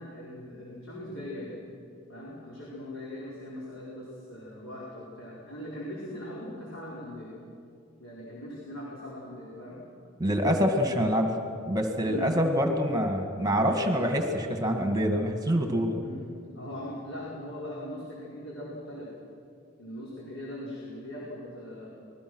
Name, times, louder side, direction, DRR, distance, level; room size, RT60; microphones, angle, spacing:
voice 1, 0.0-1.5 2.1-7.3 8.0-9.8 12.1-12.3 16.0-16.3 16.5-19.1 19.8-21.9, equal, 75° left, -6 dB, 5.0 m, -40 dB
voice 2, 10.2-11.3 11.6-16.0, equal, 20° right, 4 dB, 1.9 m, -26 dB
27.5 x 21.0 x 6.3 m, 2.5 s
head